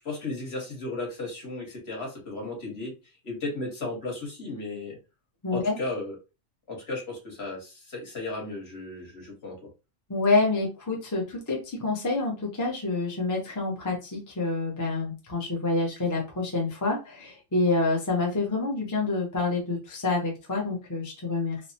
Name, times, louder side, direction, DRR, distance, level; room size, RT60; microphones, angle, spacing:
voice 1, 0.0-2.9 3.2-5.0 5.5-6.2 6.7-9.6, left 2 dB, 50° left, -1 dB, 1.3 m, -35 dB
voice 2, 5.4-5.8 10.1-21.6, left 3 dB, 20° left, -1 dB, 0.5 m, -27 dB
3.1 x 2.0 x 2.6 m, 0.28 s
omnidirectional pair, 1.4 m